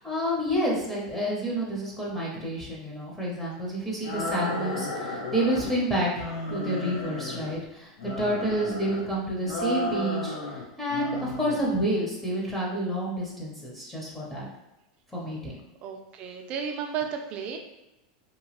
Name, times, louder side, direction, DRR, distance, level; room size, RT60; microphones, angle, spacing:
voice 1, 0.0-6.2 6.5-7.9 8.2-10.4 10.8-14.5 15.1-15.5, right 1 dB, 5° left, -5 dB, 0.6 m, -29 dB
sound 1, 4.0-5.8 6.1-7.6 8.0-9.0 9.4-10.6 10.9-11.6, left 2 dB, 85° left, 0.8 m, -33 dB
voice 2, 15.8-17.6, right 7 dB, 35° right, 4 dB, 0.4 m, -33 dB
2.8 x 2.2 x 3.0 m, 0.93 s
supercardioid pair, 155°, 4 cm